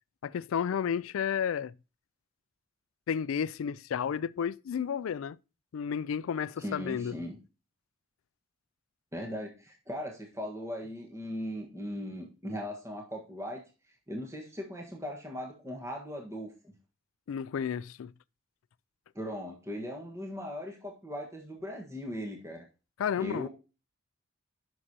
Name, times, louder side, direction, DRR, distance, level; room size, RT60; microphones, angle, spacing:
voice 1, 0.2-1.7 3.1-5.4 5.7-7.2 17.3-18.1 23.0-23.5, left 7 dB, 85° left, 0.3 m, -32 dB
voice 2, 6.6-7.4 9.1-13.6 14.1-16.7 19.1-22.6 23.2-23.5, equal, 15° right, 1.4 m, -39 dB
9.7 x 6.3 x 2.8 m
head